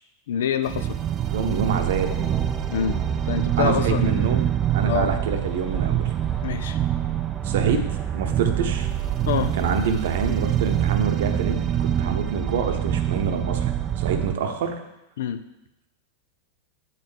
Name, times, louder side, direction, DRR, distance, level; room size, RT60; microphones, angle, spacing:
voice 1, 0.3-1.0 2.7-3.0 3.3-4.3 4.9-5.1 6.4-6.8 9.3-9.5 15.2-15.4, left 8 dB, 60° left, 11 dB, 0.5 m, -26 dB
sound 1, 0.7-14.3, right 11 dB, 30° right, 0.3 m, -25 dB
sound 2, 0.9-11.1, left 2 dB, 10° left, 0.7 m, -43 dB
voice 2, 1.3-2.1 3.6-6.1 7.4-7.8 8.1-8.9 9.6-14.8, right 6 dB, 55° right, 6 dB, 0.9 m, -26 dB
7.4 x 4.2 x 6.6 m, 0.89 s
figure-of-eight pair, 90°, 0 cm